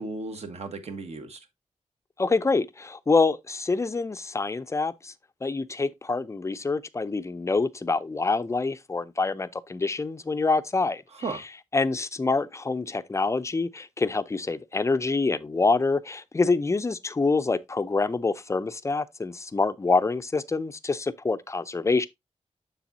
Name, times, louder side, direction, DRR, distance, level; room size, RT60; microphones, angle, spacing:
voice 1, 0.0-1.4 11.1-11.4, right 3 dB, 60° right, 1.4 m, -35 dB
voice 2, 2.2-5.1 5.4-11.0 11.3-11.4 11.7-22.1, left 3 dB, 25° left, 0.5 m, -26 dB
7.1 x 6.8 x 2.7 m
wide cardioid pair, 140°, 12 cm